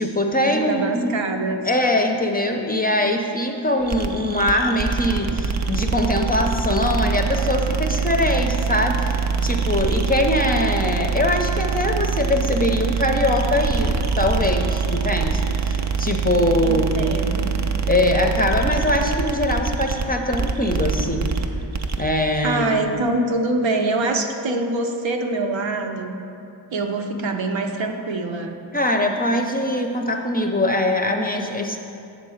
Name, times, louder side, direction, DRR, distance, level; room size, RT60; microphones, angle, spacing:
voice 1, 0.0-1.2 1.6-17.1 17.9-21.3 22.0-22.8 28.7-31.8, left 1 dB, 20° left, 2 dB, 0.5 m, -22 dB
voice 2, 0.5-1.6 16.6-17.5 22.4-26.2 26.7-28.6, right 2 dB, 70° right, 4 dB, 0.8 m, -24 dB
sound 1, 3.9-22.1, right 5 dB, 40° right, 0.5 m, -24 dB
8.1 x 3.8 x 6.3 m, 2.6 s
wide cardioid pair, 85°, 48 cm